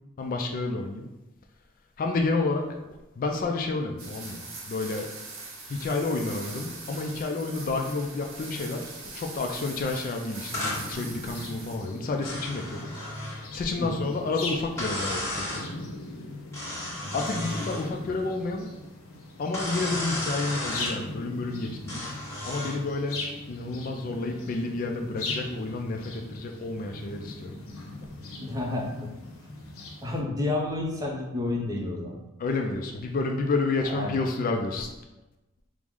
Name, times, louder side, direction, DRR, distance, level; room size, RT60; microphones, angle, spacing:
voice 1, 0.2-1.1 2.0-4.4 4.7-5.1 5.7-15.3 15.5-15.8 17.1-18.7 19.4-22.2 22.5-27.6 32.4-34.9, left 3 dB, 40° left, 2 dB, 0.3 m, -30 dB
sound 1, 4.0-12.0, right 3 dB, 75° right, 0.8 m, -42 dB
sound 2, 10.5-30.2, left 2 dB, 85° left, 0.7 m, -40 dB
sound 3, 10.5-10.8 12.2-13.4 14.8-15.6 16.5-17.9 19.5-21.0 21.9-22.8, left 1 dB, 15° left, 1.1 m, -33 dB
voice 2, 28.4-29.2 30.0-32.2 33.9-34.2, left 2 dB, 15° right, -1 dB, 0.6 m, -30 dB
4.7 x 2.0 x 3.6 m, 1.0 s
head